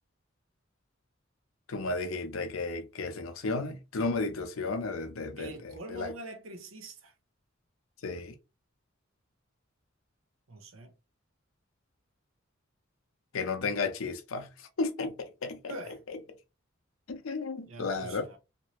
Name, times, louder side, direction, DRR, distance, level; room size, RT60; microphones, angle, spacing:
voice 1, 1.7-6.1 8.0-8.3 13.3-14.5 14.8-15.7 17.1-18.2, left 3 dB, 80° left, 0.6 m, -33 dB
voice 2, 5.4-7.1 10.5-10.9 15.7-16.0 17.7-18.4, right 1 dB, 80° right, 0.7 m, -44 dB
2.8 x 2.6 x 2.9 m
head